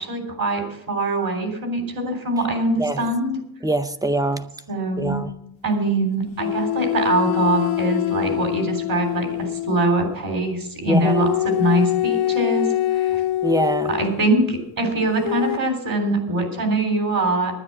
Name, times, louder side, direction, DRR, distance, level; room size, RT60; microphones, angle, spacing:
voice 1, 0.0-3.4 4.7-5.2 5.6-13.2 13.9-17.6, right 2 dB, 45° right, 5 dB, 3.6 m, -23 dB
voice 2, 3.6-4.5 5.0-5.3 10.9-11.3 13.4-13.9, right 1 dB, 10° right, 11 dB, 0.5 m, -23 dB
sound 1, 6.4-9.9 11.0-14.1 15.2-15.6, left 14 dB, 80° left, 0.7 m, -24 dB
9.9 x 9.8 x 7.7 m, 0.76 s
wide cardioid pair, 145°, 46 cm